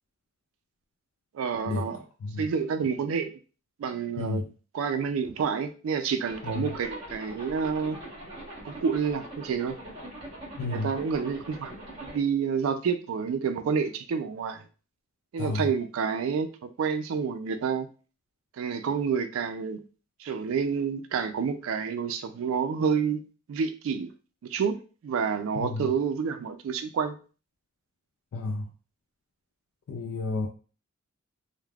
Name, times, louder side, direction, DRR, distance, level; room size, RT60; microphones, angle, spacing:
voice 1, 1.3-2.0 2.4-3.3 3.8-4.4 4.7-8.0 8.6-9.8 10.6-11.7 12.0-14.6 15.3-17.9 18.6-19.8 20.2-23.2 23.5-24.1 24.4-27.2, right 6 dB, 75° right, 9 dB, 0.3 m, -29 dB
voice 2, 4.2-4.5 6.4-6.7 10.6-10.9 15.4-15.7 25.6-25.9 28.3-28.7 29.9-30.5, left 3 dB, 90° left, 2 dB, 0.4 m, -31 dB
Zipper (clothing), 6.2-12.2, right 1 dB, 30° right, 1.0 m, -42 dB
3.2 x 2.1 x 2.3 m, 0.37 s
head